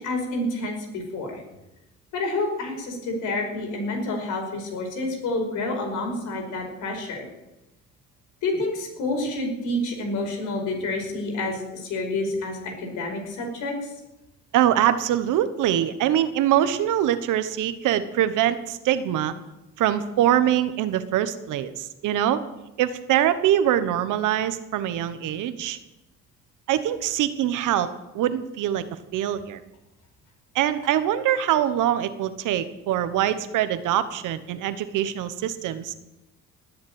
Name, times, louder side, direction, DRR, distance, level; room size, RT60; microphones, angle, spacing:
voice 1, 0.0-1.4 2.1-7.3 8.4-13.9, left 2 dB, 90° left, 1 dB, 5.3 m, -28 dB
voice 2, 14.5-19.3 19.8-22.4 22.8-25.8 26.7-27.9 28.1-28.8 29.1-29.6 30.5-35.9, right 11 dB, 90° right, 12 dB, 1.2 m, -23 dB
19.5 x 7.4 x 8.9 m, 0.98 s
cardioid pair, 90°, 30 cm